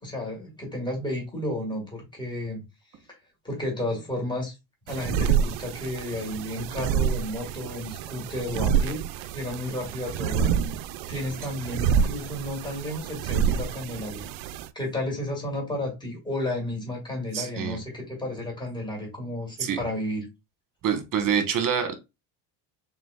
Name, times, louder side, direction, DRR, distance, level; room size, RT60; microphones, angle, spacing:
voice 1, 0.0-2.6 3.1-3.2 3.4-4.6 4.9-9.0 9.3-10.6 11.1-14.3 14.7-20.3, left 1 dB, 10° left, 2.0 m, -32 dB
sound 1, 4.9-14.7, right 7 dB, 70° right, 0.6 m, -28 dB
voice 2, 17.3-17.8 19.6-19.8 20.8-21.9, right 7 dB, 40° right, 1.3 m, -26 dB
4.0 x 3.8 x 2.4 m
supercardioid pair, 100°, 49 cm